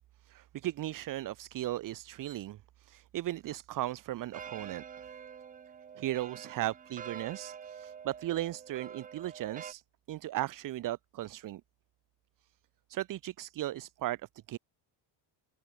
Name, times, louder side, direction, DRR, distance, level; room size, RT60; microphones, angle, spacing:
voice 1, 0.2-4.8 6.0-9.8 10.1-11.6 12.9-14.2 14.5-14.6, right 14 dB, 45° right, 0.7 m, -36 dB
sound 1, 4.3-9.7, right 7 dB, 20° right, 0.4 m, -47 dB
cardioid pair, 140°, 46 cm